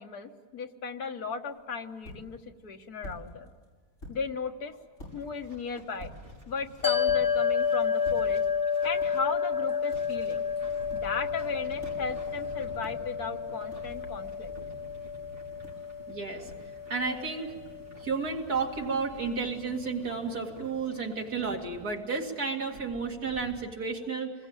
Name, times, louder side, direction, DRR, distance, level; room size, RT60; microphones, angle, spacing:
voice 1, 0.0-3.5 4.1-4.7 5.1-6.1 6.5-8.4 8.8-10.5 10.9-14.5, left 5 dB, 80° left, 5 dB, 1.9 m, -36 dB
sound 1, 1.4-18.2, equal, 55° left, 7.4 m, -51 dB
sound 2, 5.0-23.5, equal, 45° right, 5.0 m, -50 dB
sound 3, 6.8-19.3, left 6 dB, 15° left, 1.1 m, -31 dB
voice 2, 16.1-16.5 16.9-17.5 18.0-24.3, right 4 dB, 85° right, 1 dB, 3.0 m, -32 dB
27.0 x 20.5 x 9.0 m, 1.5 s
omnidirectional pair, 1.6 m